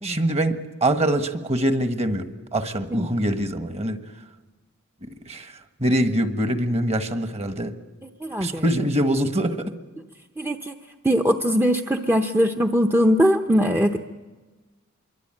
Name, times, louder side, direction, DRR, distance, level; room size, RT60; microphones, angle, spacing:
voice 1, 0.0-4.0 5.3-5.5 5.8-7.7 8.4-9.7, right 1 dB, 30° right, 8 dB, 1.5 m, -24 dB
voice 2, 8.0-8.6 10.4-10.8 11.0-14.0, equal, 10° right, 4 dB, 0.8 m, -21 dB
26.0 x 23.5 x 8.9 m, 1.3 s
head